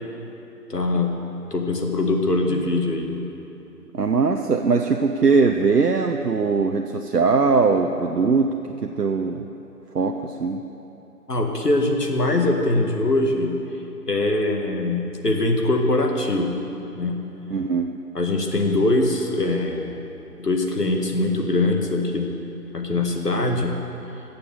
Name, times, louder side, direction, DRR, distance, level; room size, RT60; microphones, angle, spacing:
voice 1, 0.7-1.2 1.5-3.2 11.3-13.5 14.1-16.6 17.0-17.2 18.1-19.9 20.4-22.3 22.7-23.8, left 2 dB, 70° left, 2 dB, 1.8 m, -22 dB
voice 2, 3.9-8.5 8.8-9.4 9.9-10.6 17.5-17.9, right 4 dB, 70° right, 3 dB, 0.8 m, -20 dB
15.5 x 6.8 x 6.9 m, 2.9 s
figure-of-eight pair, 155°, 48 cm